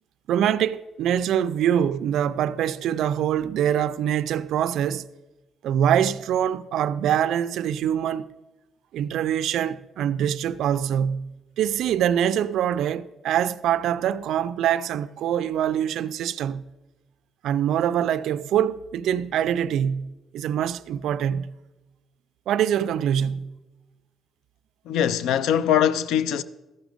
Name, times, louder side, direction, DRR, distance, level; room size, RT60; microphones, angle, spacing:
voice 1, 0.3-5.1 5.6-8.3 8.9-16.6 17.4-21.5 22.5-23.6, right 9 dB, 80° right, 0.3 m, -24 dB
voice 2, 24.9-26.4, left 9 dB, 85° left, 0.4 m, -22 dB
13.5 x 6.0 x 5.2 m
cardioid pair, 90°, 0 cm